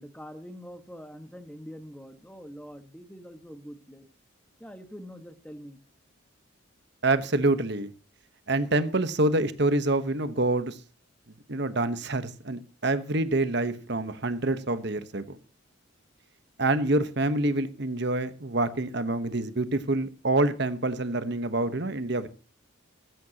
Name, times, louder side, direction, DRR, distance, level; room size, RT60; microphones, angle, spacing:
voice 1, 0.0-4.1 4.6-5.8, equal, 5° left, 1.4 m, -44 dB
voice 2, 7.0-7.9 8.5-10.8 11.5-15.4 16.6-22.3, right 2 dB, 55° right, 1.1 m, -26 dB
16.0 x 13.5 x 2.9 m
head